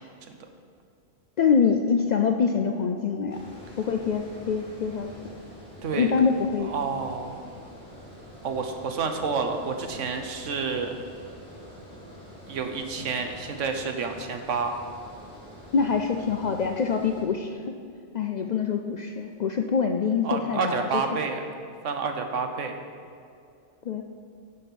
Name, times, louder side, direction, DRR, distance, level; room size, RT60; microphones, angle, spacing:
voice 1, 1.4-3.4 3.8-5.1 5.9-6.7 15.7-17.6 18.1-21.0 23.9-24.0, left 6 dB, 80° left, 4 dB, 0.3 m, -25 dB
Water, 3.3-17.2, equal, 5° left, 2.3 m, -46 dB
voice 2, 6.7-7.4 8.4-10.9 12.5-14.7 20.2-21.5 21.8-22.7, right 5 dB, 70° right, 5 dB, 1.2 m, -29 dB
11.0 x 5.4 x 5.8 m, 2.4 s
omnidirectional pair, 1.3 m